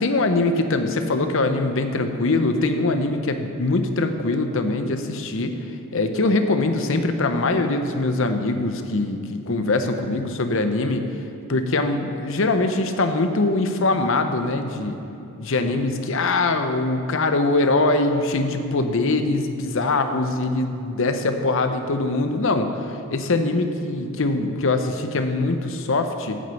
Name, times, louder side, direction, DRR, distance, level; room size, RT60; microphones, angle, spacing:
voice 1, 0.0-5.6 5.9-11.1 11.5-15.0 15.4-26.4, left 2 dB, 60° left, 7 dB, 0.7 m, -22 dB
9.3 x 6.4 x 6.9 m, 2.8 s
head